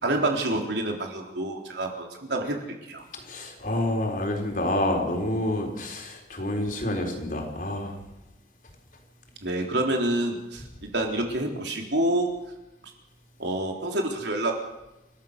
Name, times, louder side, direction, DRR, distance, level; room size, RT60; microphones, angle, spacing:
voice 1, 0.0-2.6 2.9-3.0 9.4-12.3 13.4-14.6, right 1 dB, 70° right, 2 dB, 3.8 m, -27 dB
voice 2, 3.1-8.0, left 1 dB, 45° left, 2 dB, 4.1 m, -28 dB
29.5 x 13.5 x 6.8 m, 0.96 s
head